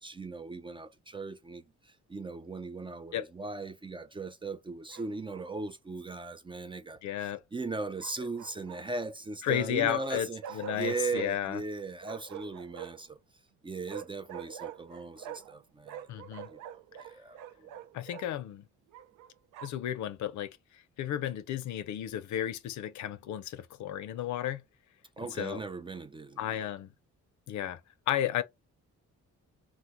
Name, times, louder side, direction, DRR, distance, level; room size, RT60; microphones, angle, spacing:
voice 1, 0.0-13.2 13.6-16.0 16.5-16.6 17.0-17.4 25.2-26.4, right 3 dB, 15° right, 0.3 m, -38 dB
Bark, 4.9-5.5 8.0-9.1 10.4-11.3 12.0-13.1 13.9-15.6 15.8-18.3 18.9-19.9, right 10 dB, 85° right, 0.5 m, -45 dB
voice 2, 7.0-7.4 9.4-11.6 16.1-16.5 17.9-18.6 19.6-24.6 25.3-25.6 26.4-26.9 27.5-27.8 28.1-28.4, left 11 dB, 70° left, 0.5 m, -33 dB
2.9 x 2.1 x 3.5 m
cardioid pair, 90°, 30 cm